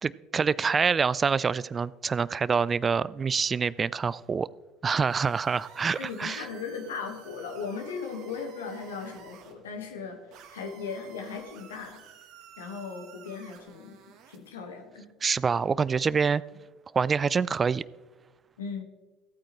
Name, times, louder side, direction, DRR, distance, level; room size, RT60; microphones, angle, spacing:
voice 1, 0.0-4.5 4.8-6.5 15.2-16.4 16.9-17.8, right 5 dB, 30° right, 20 dB, 0.3 m, -26 dB
sound 1, 4.9-9.5 10.3-14.5, right 8 dB, 60° right, 1.3 m, -52 dB
voice 2, 6.0-12.0 12.6-14.0 14.3-15.1 18.6-18.8, left 5 dB, 85° left, 4 dB, 1.4 m, -37 dB
14.5 x 8.8 x 3.1 m, 1.2 s
hypercardioid pair, 70°, 0 cm